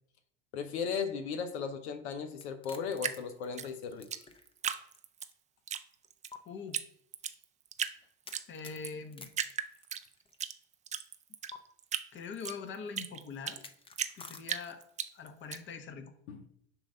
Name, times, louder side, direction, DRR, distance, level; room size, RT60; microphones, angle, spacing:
voice 1, 0.5-4.1 16.3-16.4, left 6 dB, 80° left, 8 dB, 0.8 m, -36 dB
sound 1, 2.3-5.0 5.3-5.4 6.3-6.4 8.2-10.4 11.5-11.6 13.5-15.0, left 4 dB, 15° left, 0.6 m, -51 dB
Drip, 3.0-5.3 5.7-6.3 6.7-6.8 7.1-8.0 8.3-8.9 9.3-10.5 10.9-13.6 14.0-15.6, right 8 dB, 20° right, 0.4 m, -36 dB
voice 2, 6.5-6.8 8.5-9.3 12.1-13.6 14.2-14.8 15.1-16.1, left 5 dB, 35° left, 7 dB, 1.0 m, -43 dB
7.0 x 2.6 x 5.4 m, 0.68 s
hypercardioid pair, 95°, 33 cm